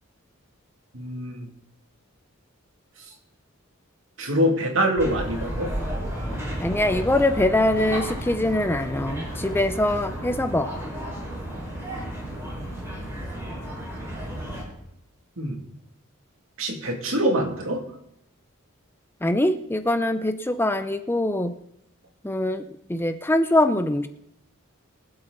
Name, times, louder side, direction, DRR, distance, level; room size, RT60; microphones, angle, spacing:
voice 1, 0.9-1.5 4.2-5.7 15.4-15.6 16.6-17.8, equal, 70° right, 1 dB, 2.7 m, -24 dB
sound 1, 5.0-14.6, equal, 10° right, 5.4 m, -32 dB
voice 2, 6.6-10.9 19.2-21.5 22.2-22.6 22.9-24.1, left 1 dB, 10° left, 9 dB, 0.5 m, -23 dB
23.5 x 7.9 x 4.0 m, 0.78 s
head